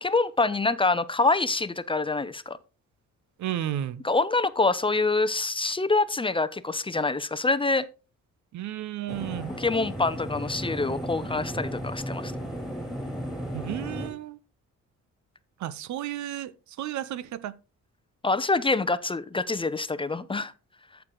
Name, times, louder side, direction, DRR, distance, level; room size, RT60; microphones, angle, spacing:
voice 1, 0.0-2.6 4.0-7.9 9.6-12.3 18.2-20.5, left 3 dB, 15° left, 0.6 m, -26 dB
voice 2, 3.4-4.0 8.5-9.5 13.5-14.4 15.6-17.5, right 12 dB, 70° right, 0.7 m, -33 dB
sound 1, 9.1-14.1, equal, ahead, 2.8 m, -34 dB
14.0 x 4.7 x 3.8 m
cardioid pair, 90°, 30 cm